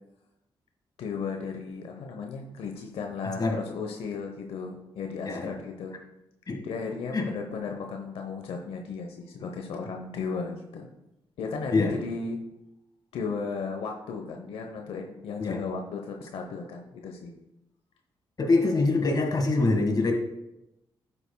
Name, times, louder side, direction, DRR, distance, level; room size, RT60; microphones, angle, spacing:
voice 1, 1.0-5.9 6.6-10.9 11.4-12.4 13.1-17.3, left 5 dB, 90° left, 3 dB, 0.9 m, -35 dB
voice 2, 18.4-20.1, left 3 dB, 45° left, 3 dB, 1.7 m, -24 dB
11.0 x 8.7 x 2.3 m, 0.89 s
cardioid pair, 80°, 9 cm